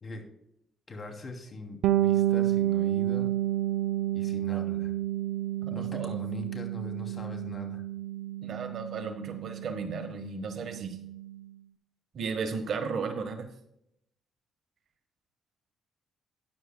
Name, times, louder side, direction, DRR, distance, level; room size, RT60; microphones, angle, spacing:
voice 1, 0.9-3.3 4.1-4.9 5.7-7.8, left 2 dB, 40° left, 3 dB, 2.7 m, -41 dB
Bass guitar, 1.8-11.4, right 13 dB, 85° right, 0.4 m, -30 dB
voice 2, 4.4-4.7 5.6-6.2 8.4-11.0 12.1-13.4, right 5 dB, 60° right, 6 dB, 1.3 m, -35 dB
14.0 x 9.5 x 2.2 m, 0.78 s
cardioid pair, 90°, 0 cm